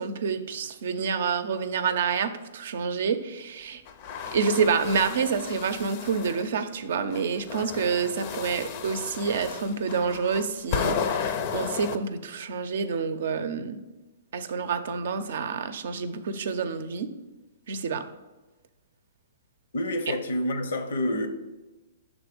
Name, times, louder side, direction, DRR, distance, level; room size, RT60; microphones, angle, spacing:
voice 1, 0.0-3.8 4.3-13.8 14.3-17.1 17.7-18.0 20.1-20.2, right 5 dB, 70° right, 0.6 m, -28 dB
sound 1, 3.9-6.5 7.1-12.0, left 7 dB, 40° left, 0.5 m, -33 dB
voice 2, 19.7-21.3, left 1 dB, 80° left, 0.8 m, -28 dB
6.1 x 3.6 x 5.0 m
hypercardioid pair, 140°, 0 cm